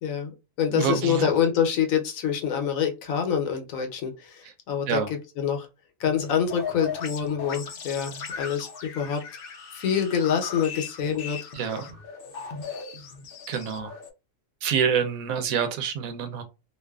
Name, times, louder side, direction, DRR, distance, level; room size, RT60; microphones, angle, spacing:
voice 1, 0.0-5.7 6.0-9.2 9.7-11.4, left 8 dB, 80° left, 1.0 m, -26 dB
voice 2, 0.7-1.3 4.9-5.1 11.5-11.9 13.5-13.9 14.6-16.4, right 7 dB, 85° right, 1.1 m, -26 dB
sound 1, 6.0-14.1, left 6 dB, 60° left, 0.6 m, -38 dB
2.5 x 2.4 x 2.3 m
omnidirectional pair, 1.4 m